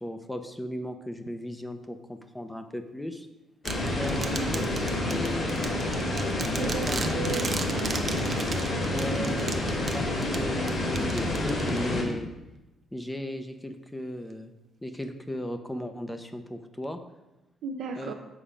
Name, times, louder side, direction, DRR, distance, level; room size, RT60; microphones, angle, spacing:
voice 1, 0.0-3.3 4.0-6.1 6.6-7.2 8.8-12.3 12.9-14.5 14.8-17.0 18.0-18.1, left 1 dB, 10° left, 7 dB, 0.6 m, -36 dB
sound 1, 3.6-12.0, left 1 dB, 50° left, 1.8 m, -28 dB
sound 2, 3.7-12.1, right 4 dB, 40° right, 0.6 m, -37 dB
voice 2, 4.1-4.5 6.6-8.0 17.6-18.1, right 6 dB, 85° right, 2 dB, 0.5 m, -36 dB
7.1 x 4.3 x 5.0 m, 1.0 s
cardioid pair, 90°, 0 cm